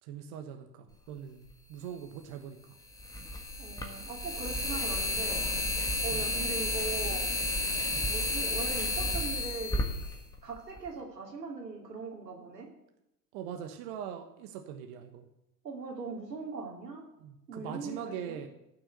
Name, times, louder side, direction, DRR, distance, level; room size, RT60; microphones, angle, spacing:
voice 1, 0.0-2.6 6.1-6.3 7.9-8.1 13.3-15.3 17.2-18.5, right 8 dB, 45° right, 5 dB, 1.3 m, -42 dB
sound 1, 1.5-1.6 3.0-10.9, left 2 dB, 5° left, 1.4 m, -32 dB
voice 2, 3.6-5.6 6.0-7.3 8.0-9.9 10.4-12.7 15.6-17.0 17.5-18.4, right 4 dB, 85° right, 1 dB, 2.7 m, -40 dB
13.5 x 6.2 x 6.7 m, 0.88 s
hypercardioid pair, 95°, 48 cm